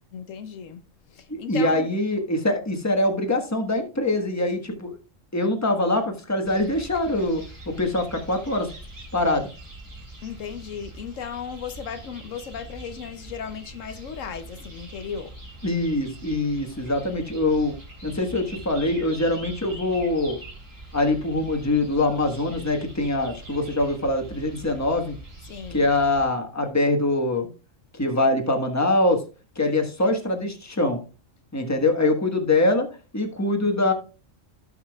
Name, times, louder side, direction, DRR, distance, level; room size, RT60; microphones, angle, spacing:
voice 1, 0.1-0.8 1.1-1.9 10.2-15.4 25.5-25.9, left 7 dB, 75° left, 1.1 m, -36 dB
voice 2, 1.3-5.0 5.3-8.7 9.1-9.5 15.6-17.8 18.0-20.4 20.9-25.2 25.7-27.5 27.9-29.2 29.5-31.0 31.5-32.9 33.1-33.9, left 2 dB, 15° left, 1.3 m, -23 dB
sound 1, 6.4-26.2, right 1 dB, 75° right, 4.3 m, -43 dB
17.0 x 5.8 x 2.3 m
omnidirectional pair, 1.4 m